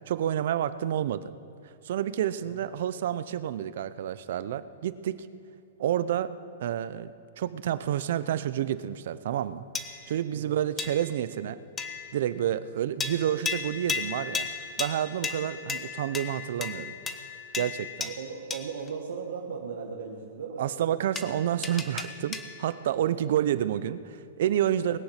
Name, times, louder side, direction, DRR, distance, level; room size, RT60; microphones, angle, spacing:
voice 1, 0.1-1.3 1.6-5.3 5.8-6.3 6.6-9.6 10.1-11.6 12.1-14.5 14.8-16.9 17.5-18.1 20.6-25.0, right 10 dB, 50° right, 15 dB, 0.5 m, -29 dB
sound 1, 9.7-10.2 10.8-11.2 11.8-12.3 13.0-18.9 21.2-22.7, left 5 dB, 10° left, 0.7 m, -35 dB
voice 2, 10.3-10.6 13.1-13.4 15.6-15.7 16.8-16.9 18.0-20.7 23.1-23.2 24.8-25.0, right 6 dB, 90° right, 0 dB, 1.5 m, -38 dB
20.5 x 8.9 x 5.8 m, 2.4 s
hypercardioid pair, 175°, 0 cm